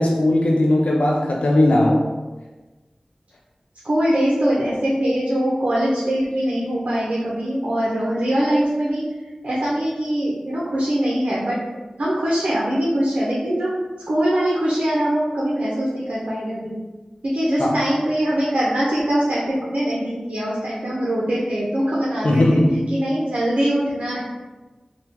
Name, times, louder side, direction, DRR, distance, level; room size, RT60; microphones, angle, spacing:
voice 1, 0.0-2.1 17.6-17.9 22.2-22.9, left 1 dB, 70° left, -1 dB, 0.3 m, -18 dB
voice 2, 3.8-9.0 9.4-11.6 12.0-13.7 14.1-16.7 17.2-22.6 22.9-24.2, right 1 dB, 75° right, -6 dB, 0.7 m, -22 dB
3.5 x 2.3 x 2.8 m, 1.2 s
wide cardioid pair, 55°, 2 cm